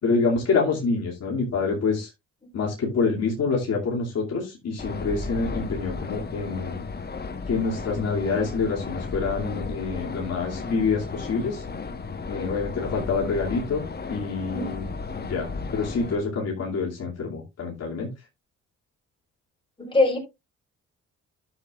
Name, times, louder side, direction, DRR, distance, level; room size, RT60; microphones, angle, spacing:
voice 1, 0.0-2.1 2.5-6.8 7.5-11.6 12.3-14.9 15.1-18.1, left 4 dB, 55° left, -2 dB, 2.6 m, -26 dB
sound 1, 4.8-16.2, left 4 dB, 35° left, 1.3 m, -34 dB
voice 2, 19.8-20.2, left 2 dB, 15° left, 1 dB, 4.3 m, -22 dB
11.5 x 7.3 x 2.5 m, 0.23 s
cardioid pair, 90°, 30 cm